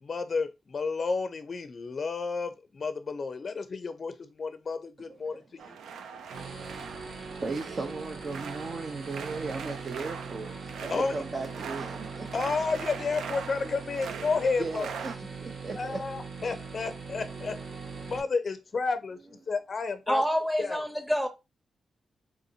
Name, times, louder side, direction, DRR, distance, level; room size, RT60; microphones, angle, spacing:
voice 1, 0.0-5.8 10.9-11.2 12.3-14.9 15.7-17.6 18.1-20.2 20.6-20.9, left 4 dB, 50° left, 0.4 m, -31 dB
sound 1, 5.6-15.2, right 6 dB, 90° right, 0.4 m, -42 dB
voice 2, 6.3-12.3 13.6-13.8 14.6-16.0, right 3 dB, 50° right, 0.6 m, -37 dB
sound 2, 6.3-18.2, right 4 dB, 70° right, 1.1 m, -41 dB
voice 3, 20.1-21.3, equal, 5° right, 0.8 m, -27 dB
3.7 x 2.7 x 2.7 m
cardioid pair, 60°, 0 cm